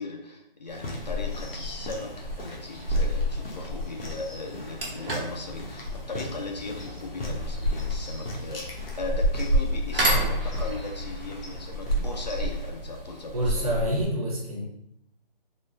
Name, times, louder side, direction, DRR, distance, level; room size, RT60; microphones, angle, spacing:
voice 1, 0.0-13.7, left 3 dB, 45° left, 1 dB, 0.4 m, -38 dB
sound 1, 0.7-12.7, left 1 dB, 80° left, 1.0 m, -41 dB
sound 2, 0.7-14.1, equal, 5° right, 0.6 m, -31 dB
sound 3, 4.4-13.1, right 2 dB, 70° right, 1.1 m, -34 dB
voice 2, 13.3-14.6, right 1 dB, 40° right, -3 dB, 0.9 m, -27 dB
3.7 x 2.1 x 2.4 m, 0.78 s
hypercardioid pair, 165°, 29 cm